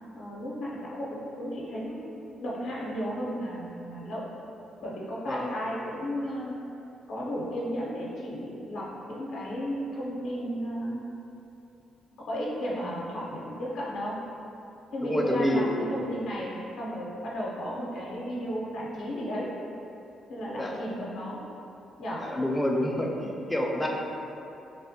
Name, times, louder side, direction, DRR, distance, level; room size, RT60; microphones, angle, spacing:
voice 1, 0.1-2.1 2.4-4.3 4.8-6.6 7.1-11.0 12.2-14.2 14.9-19.5 20.3-21.4 22.0-22.2, equal, 75° left, -5 dB, 0.5 m, -34 dB
voice 2, 15.0-15.8 20.6-20.7 22.2-23.9, left 1 dB, 10° left, -1 dB, 0.4 m, -28 dB
3.3 x 2.1 x 2.7 m, 2.8 s
cardioid pair, 90°, 0 cm